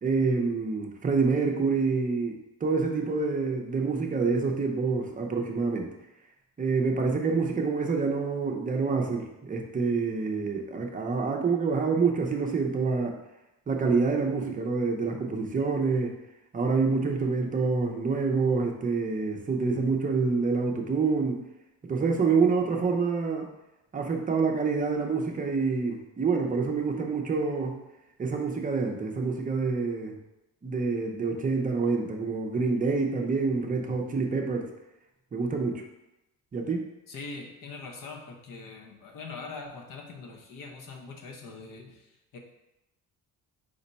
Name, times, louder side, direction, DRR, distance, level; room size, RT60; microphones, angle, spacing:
voice 1, 0.0-5.9 6.6-13.2 13.7-16.2 16.5-21.4 21.8-23.5 23.9-27.7 28.2-30.2 30.6-34.7 35.3-35.8 36.5-36.8, right 4 dB, 25° right, 2 dB, 0.5 m, -27 dB
voice 2, 37.1-42.4, left 4 dB, 65° left, 3 dB, 0.8 m, -42 dB
5.1 x 2.1 x 4.0 m, 0.91 s
cardioid pair, 130°, 36 cm